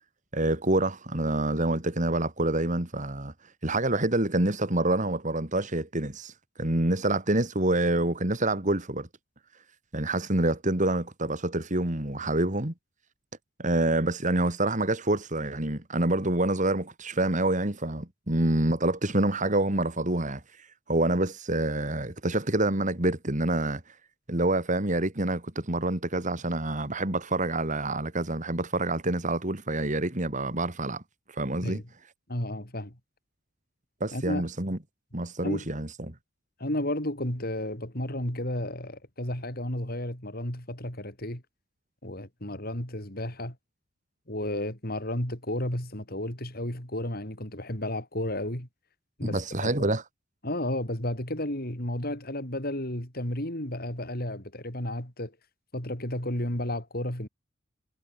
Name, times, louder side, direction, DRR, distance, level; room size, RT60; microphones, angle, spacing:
voice 1, 0.3-3.3 3.6-6.3 6.6-9.1 9.9-12.7 13.6-23.8 24.3-31.0 31.3-31.8 34.0-34.8 35.1-36.1 49.2-50.0, right 2 dB, 40° right, 2.9 m, -27 dB
voice 2, 32.3-33.0 34.1-34.5 35.4-35.6 36.6-41.4 42.0-43.6 44.3-48.7 49.2-49.9 50.4-55.3 55.7-57.3, left 1 dB, 50° left, 5.5 m, -32 dB
head